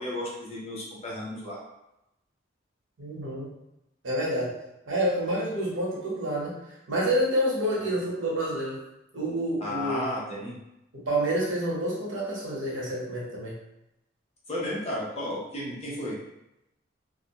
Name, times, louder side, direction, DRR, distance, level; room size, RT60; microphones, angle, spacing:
voice 1, 0.0-1.6 7.8-7.9 9.6-10.6 14.5-16.2, left 1 dB, 30° left, -5 dB, 0.7 m, -33 dB
voice 2, 3.0-3.5 4.0-4.5 4.9-6.5 6.9-8.8 9.1-10.1 11.1-13.6, right 1 dB, 80° right, -5 dB, 0.9 m, -28 dB
2.5 x 2.1 x 2.8 m, 0.87 s
head